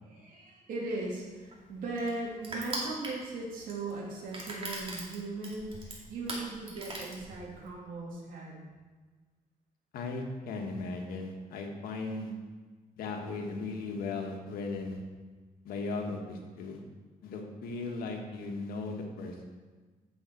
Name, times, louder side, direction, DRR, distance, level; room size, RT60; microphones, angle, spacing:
voice 1, 0.0-8.7 11.9-12.1, right 2 dB, 70° right, -3 dB, 2.6 m, -38 dB
Crushing, 0.9-7.7, right 2 dB, 35° right, 2.3 m, -41 dB
voice 2, 9.9-12.3 13.0-15.0 15.6-16.8 17.2-19.4, left 3 dB, 85° left, 2 dB, 1.4 m, -37 dB
8.9 x 7.2 x 4.5 m, 1.4 s
cardioid pair, 120°, 15 cm